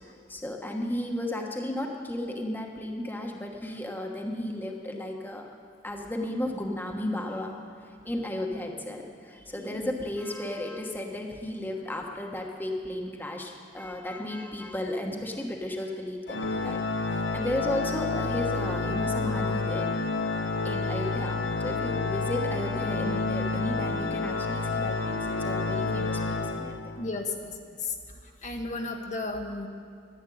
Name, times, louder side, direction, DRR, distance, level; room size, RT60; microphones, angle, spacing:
voice 1, 0.3-5.4 5.8-7.6 7.8-16.8 17.1-19.9 20.6-26.8, left 1 dB, 10° left, 1 dB, 1.2 m, -34 dB
voice 2, 9.6-9.9 27.0-27.5 27.8-27.9 28.4-29.7, left 3 dB, 40° left, 2 dB, 1.2 m, -33 dB
Organ, 16.3-27.1, left 3 dB, 75° left, 0.9 m, -29 dB
11.5 x 10.5 x 9.2 m, 2.4 s
head